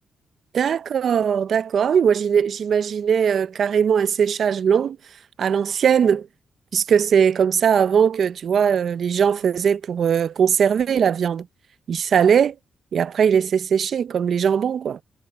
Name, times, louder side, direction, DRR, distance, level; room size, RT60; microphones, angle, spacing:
voice 1, 0.5-5.0 5.4-6.3 6.7-11.5 11.9-12.5 12.9-15.0, right 7 dB, 65° right, 0.5 m, -20 dB
cardioid pair, 95°, 0 cm